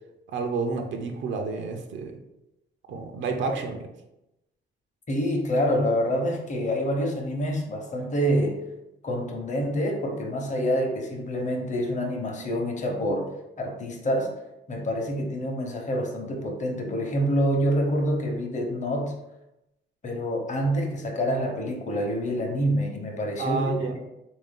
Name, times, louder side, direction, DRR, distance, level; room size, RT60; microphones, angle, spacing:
voice 1, 0.3-2.1 2.9-3.9 23.4-24.0, right 4 dB, 70° right, 4 dB, 0.6 m, -29 dB
voice 2, 5.1-8.6 9.0-13.3 13.6-14.3 14.7-19.1 20.0-24.0, equal, 35° left, 1 dB, 0.9 m, -27 dB
3.5 x 2.6 x 3.6 m, 0.90 s
cardioid pair, 90°, 20 cm